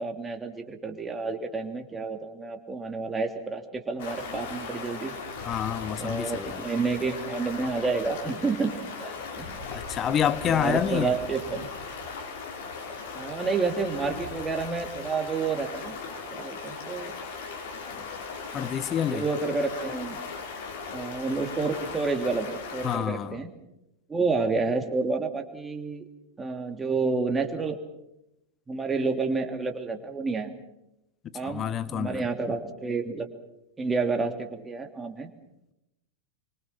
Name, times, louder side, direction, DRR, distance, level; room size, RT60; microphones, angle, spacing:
voice 1, 0.0-5.1 6.0-9.6 10.5-11.7 13.1-16.0 16.3-17.1 18.0-18.1 19.1-20.2 20.9-23.5 24.1-26.0 26.4-27.8 28.7-30.5 31.3-33.3 33.8-35.3, right 4 dB, 15° right, 2.9 m, -29 dB
Stream, 4.0-23.0, left 4 dB, 55° left, 5.2 m, -38 dB
voice 2, 5.4-6.5 9.7-11.1 18.5-19.2 22.8-23.4 31.4-32.2, left 9 dB, 25° left, 1.2 m, -28 dB
26.0 x 25.0 x 5.9 m
figure-of-eight pair, 90°, 0 cm